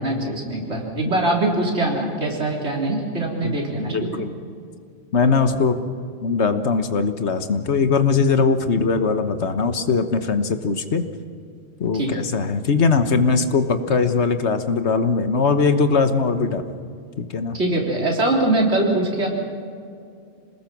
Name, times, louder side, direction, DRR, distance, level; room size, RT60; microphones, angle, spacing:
voice 1, 0.0-4.3 11.9-12.1 17.5-19.3, right 2 dB, 85° right, -1 dB, 4.0 m, -22 dB
voice 2, 3.9-4.3 5.1-5.8 6.2-11.0 11.8-16.6 17.2-17.6, left 4 dB, 85° left, 9 dB, 1.5 m, -20 dB
27.5 x 19.5 x 6.1 m, 2.4 s
omnidirectional pair, 1.1 m